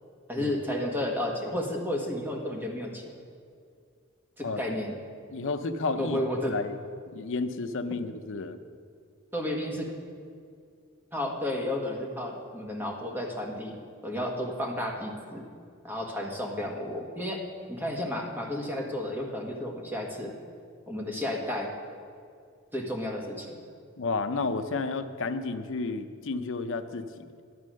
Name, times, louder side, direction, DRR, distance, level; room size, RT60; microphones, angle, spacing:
voice 1, 0.3-3.0 4.4-5.0 6.0-6.5 9.3-9.9 11.1-13.8 14.0-15.5 15.8-17.4 17.7-20.3 20.9-21.7 22.7-23.5, left 1 dB, 10° right, 0 dB, 1.5 m, -32 dB
voice 2, 4.4-4.8 5.3-6.2 6.5-6.8 7.1-8.6 24.0-27.2, left 3 dB, 65° left, 8 dB, 0.6 m, -32 dB
11.0 x 8.4 x 6.3 m, 2.3 s
head